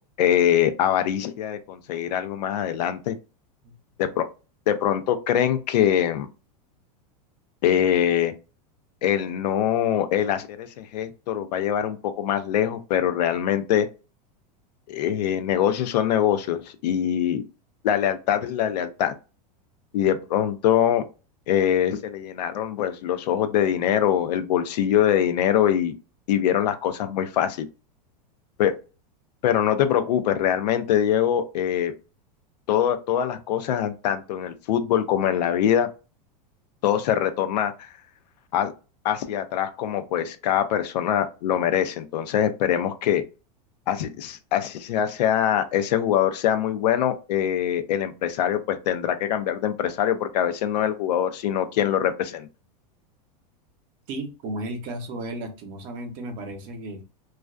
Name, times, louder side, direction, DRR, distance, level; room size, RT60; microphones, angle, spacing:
voice 1, 0.2-3.2 4.0-4.3 4.7-6.3 7.6-8.3 9.0-13.9 14.9-17.4 17.8-19.1 19.9-21.0 21.5-26.0 26.3-27.7 28.6-28.7 29.4-31.9 32.7-35.9 36.8-37.9 38.5-38.7 39.0-43.2 43.9-52.5, left 10 dB, 80° left, 0.5 m, -23 dB
voice 2, 54.1-57.0, right 1 dB, 45° right, 0.7 m, -34 dB
2.4 x 2.2 x 2.4 m
supercardioid pair, 135°, 21 cm